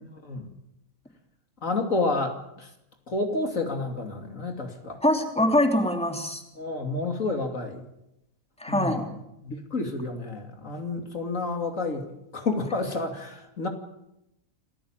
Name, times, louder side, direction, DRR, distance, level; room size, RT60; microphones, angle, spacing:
voice 1, 0.1-0.5 1.6-2.7 3.1-5.0 6.5-7.9 8.7-9.1 9.4-12.1 12.3-13.7, left 3 dB, 70° left, 4 dB, 3.1 m, -30 dB
voice 2, 5.0-6.4 8.6-9.0, left 1 dB, 5° left, 4 dB, 3.1 m, -23 dB
27.5 x 15.5 x 9.0 m, 0.85 s
omnidirectional pair, 1.4 m